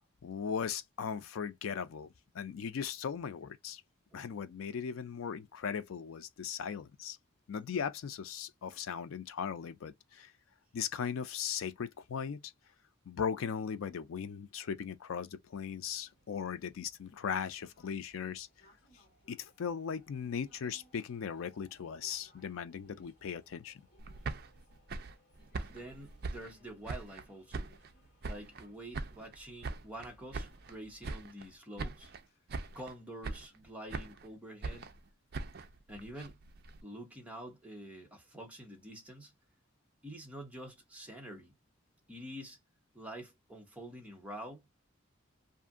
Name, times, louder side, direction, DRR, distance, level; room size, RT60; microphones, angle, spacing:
voice 1, 0.2-2.1 2.3-3.8 4.1-7.2 7.5-10.3 10.7-12.5 13.1-18.5 19.3-23.8, left 7 dB, 85° left, 0.4 m, -38 dB
sound 1, 15.7-31.3, equal, 50° left, 1.6 m, -66 dB
sound 2, 24.0-27.3 27.5-28.7 28.9-30.8 31.0-31.5 31.8-32.2 32.5-32.9 33.2-34.3 34.6-36.8, right 3 dB, 50° right, 0.4 m, -42 dB
voice 2, 25.6-27.7 28.2-32.1 32.7-35.0 35.9-36.4 36.8-39.3 40.0-41.6 42.1-42.6 42.9-44.7, right 1 dB, 5° right, 0.8 m, -47 dB
2.7 x 2.4 x 2.3 m
head